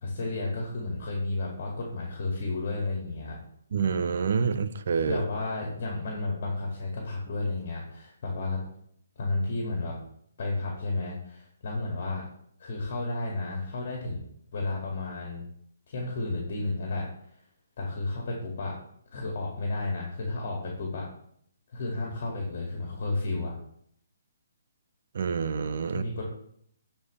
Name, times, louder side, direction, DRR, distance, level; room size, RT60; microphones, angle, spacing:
voice 1, 0.0-3.4 5.1-8.6 9.2-9.9 10.4-12.2 12.6-14.2 14.5-15.5 15.9-17.1 17.8-18.7 19.1-21.1 21.7-23.6 25.9-26.2, left 2 dB, 50° left, -1 dB, 2.2 m, -32 dB
voice 2, 3.7-5.2 25.1-26.0, right 6 dB, 60° right, 11 dB, 0.7 m, -27 dB
12.5 x 4.5 x 3.3 m, 0.68 s
hypercardioid pair, 145°, 0 cm